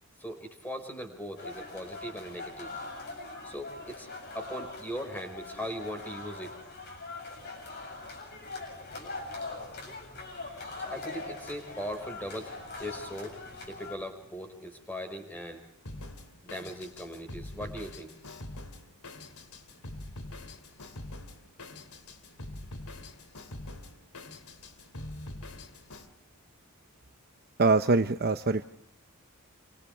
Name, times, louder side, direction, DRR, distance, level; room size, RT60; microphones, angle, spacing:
voice 1, 0.2-2.7 3.4-4.1 4.3-6.6 10.8-12.5 12.8-15.6 16.4-18.1, equal, 10° left, 6 dB, 5.2 m, -39 dB
sound 1, 1.4-13.9, left 3 dB, 50° left, 7.7 m, -42 dB
Drum kit, 15.9-26.1, left 1 dB, 85° left, 2.9 m, -44 dB
voice 2, 27.6-28.6, right 3 dB, 45° right, 8 dB, 0.8 m, -23 dB
29.5 x 26.0 x 3.4 m, 0.71 s
head